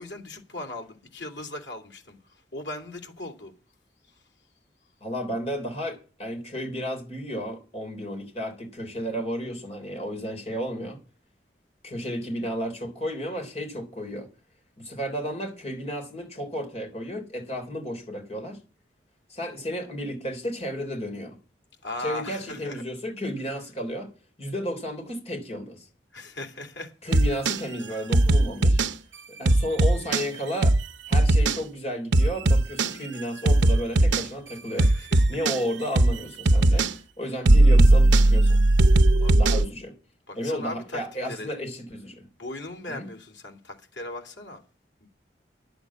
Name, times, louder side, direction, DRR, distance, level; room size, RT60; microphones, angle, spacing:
voice 1, 0.0-3.5 4.0-4.2 21.8-22.8 26.1-26.9 27.9-28.0 34.7-35.4 36.7-37.0 39.2-39.4 40.3-41.5 42.4-44.6, left 1 dB, 85° left, 3.0 m, -38 dB
voice 2, 5.0-11.0 11.8-14.3 14.8-18.6 19.3-21.4 22.0-24.1 24.4-25.9 27.0-28.8 29.4-30.8 31.1-36.9 37.2-38.6 39.4-39.9 40.4-42.3 42.9-43.0, equal, 35° left, 3.8 m, -33 dB
sound 1, 27.1-27.6 28.1-28.9 29.5-30.3 30.6-30.8 31.1-31.6 32.1-32.9 33.5-34.3 34.8-35.6 36.0-36.2 36.5-36.9 37.5-39.7, right 1 dB, 85° right, 0.8 m, -18 dB
10.5 x 8.0 x 8.6 m
head